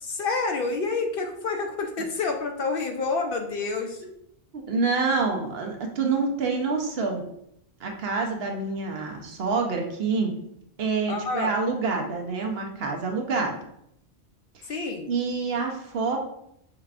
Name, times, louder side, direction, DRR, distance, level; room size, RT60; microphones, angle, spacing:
voice 1, 0.0-4.0 11.1-11.5 14.7-15.1, left 4 dB, 65° left, 4 dB, 0.7 m, -28 dB
voice 2, 4.5-7.2 7.8-10.3 10.8-13.6 15.1-16.2, right 4 dB, 65° right, 2 dB, 0.9 m, -27 dB
5.7 x 3.3 x 2.4 m, 0.76 s
omnidirectional pair, 1.2 m